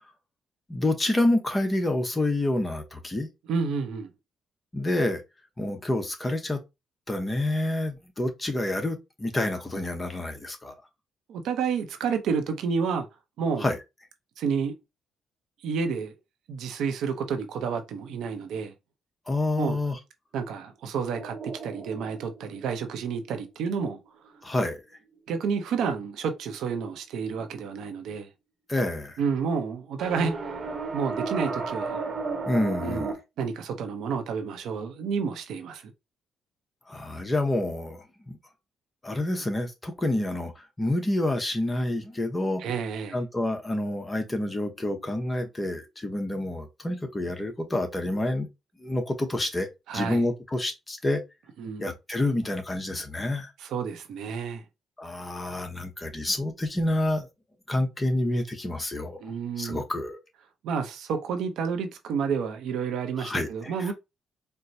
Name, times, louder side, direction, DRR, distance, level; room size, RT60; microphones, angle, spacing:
voice 1, 0.7-3.3 4.7-5.2 5.6-6.6 7.1-10.7 13.6-13.8 19.3-20.0 24.4-24.8 28.7-29.2 32.5-33.1 36.9-38.4 39.0-42.6 43.1-48.5 48.8-49.7 49.9-51.2 51.8-53.5 55.0-57.3 57.7-59.2 59.6-60.2 63.2-63.9, left 1 dB, 20° left, 0.9 m, -28 dB
voice 2, 3.5-4.1 11.3-13.1 13.4-13.7 14.4-14.7 15.6-16.1 16.5-18.7 19.6-19.8 20.3-24.0 25.3-28.3 29.2-30.4 30.9-32.0 32.8-33.1 33.4-35.9 42.6-43.2 49.9-50.2 51.6-51.9 53.6-54.6 59.2-59.8 60.6-63.9, right 6 dB, 80° right, 0.7 m, -30 dB
sound 1, 21.1-23.5 30.0-33.1, right 4 dB, 50° right, 1.0 m, -33 dB
4.4 x 2.1 x 2.6 m
cardioid pair, 90°, 0 cm